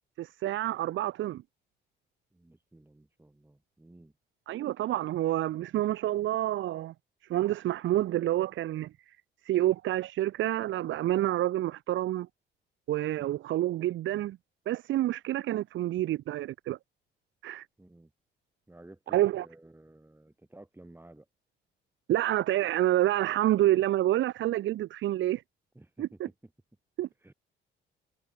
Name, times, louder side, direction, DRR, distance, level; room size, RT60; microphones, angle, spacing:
voice 1, 0.2-1.4 4.5-6.9 7.3-9.2 9.4-12.3 12.9-14.4 14.7-16.8 17.4-17.7 19.1-19.5 22.1-25.4 26.0-26.3 27.0-27.1, right 14 dB, 75° right, 0.9 m, -28 dB
voice 2, 2.3-4.1 17.8-18.1 18.7-21.3 25.8-26.2 27.2-27.3, right 1 dB, 10° right, 3.7 m, -54 dB
cardioid pair, 90°, 20 cm